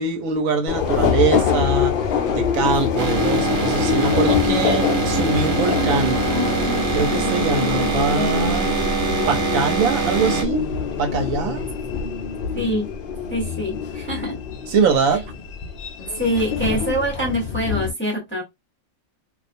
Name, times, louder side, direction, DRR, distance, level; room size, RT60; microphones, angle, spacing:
voice 1, 0.0-2.0 2.3-6.2 6.9-8.7 9.3-10.6 11.0-11.7 14.7-15.3, right 4 dB, 80° right, 1.1 m, -23 dB
Subway metro underground, 0.7-17.9, left 7 dB, 65° left, 0.5 m, -24 dB
sound 1, 3.0-10.4, right 6 dB, 50° right, 0.7 m, -24 dB
voice 2, 12.5-12.9 13.3-14.4 16.1-18.4, equal, 10° left, 0.7 m, -24 dB
2.4 x 2.3 x 2.5 m
omnidirectional pair, 1.4 m